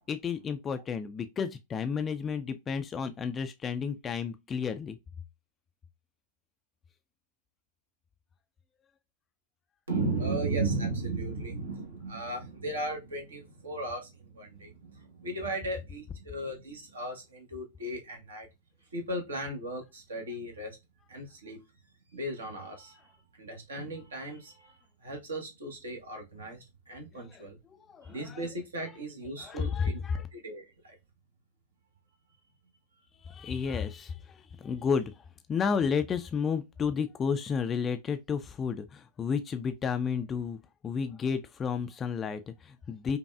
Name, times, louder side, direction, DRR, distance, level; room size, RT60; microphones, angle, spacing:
voice 1, 0.1-5.0 27.1-28.5 28.8-28.9 29.4-30.3 33.2-40.6 40.8-43.2, left 6 dB, 25° left, 0.3 m, -32 dB
voice 2, 9.9-18.5 18.9-20.8 21.1-21.6 22.1-27.6 28.0-31.0, right 2 dB, 70° right, 1.0 m, -36 dB
5.4 x 2.3 x 2.3 m
figure-of-eight pair, 90°, 0 cm